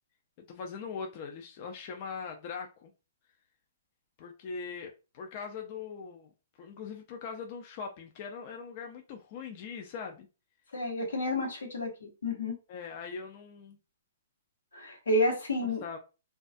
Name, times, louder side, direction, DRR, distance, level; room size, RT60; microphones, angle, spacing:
voice 1, 0.4-2.9 4.2-6.3 6.6-10.3 12.7-13.8 15.8-16.0, left 5 dB, 45° left, 0.4 m, -41 dB
voice 2, 10.7-12.5 14.7-16.0, left 1 dB, 90° left, 0.9 m, -30 dB
2.3 x 2.3 x 2.5 m
hypercardioid pair, 135°, 0 cm